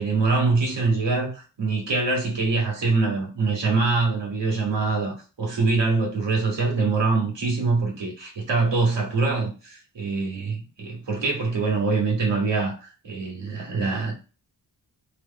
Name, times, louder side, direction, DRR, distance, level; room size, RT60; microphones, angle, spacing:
voice 1, 0.0-14.1, right 3 dB, 80° right, 2.1 m, -24 dB
3.5 x 3.3 x 4.2 m
wide cardioid pair, 85°, 43 cm